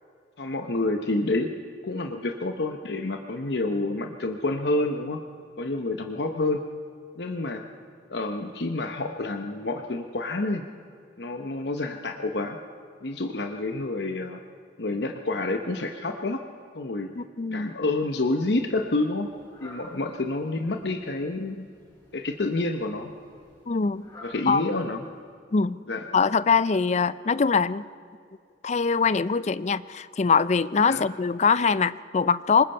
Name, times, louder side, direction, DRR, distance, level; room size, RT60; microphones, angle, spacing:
voice 1, 0.4-5.2 5.6-6.6 7.2-7.6 8.1-10.7 11.2-12.6 13.0-14.4 14.8-16.4 16.7-17.1 17.5-19.3 19.6-21.7 22.1-23.1 24.2-25.1 25.9-26.1 30.9-31.0, left 2 dB, 65° left, 5 dB, 0.9 m, -28 dB
voice 2, 17.2-17.7 23.7-24.1 24.5-24.6 25.5-25.8 26.1-27.8 28.6-32.6, left 5 dB, 40° left, 17 dB, 0.4 m, -23 dB
Fowl, 18.0-25.4, left 1 dB, 20° left, 6.6 m, -52 dB
25.5 x 20.0 x 5.5 m, 2.3 s
head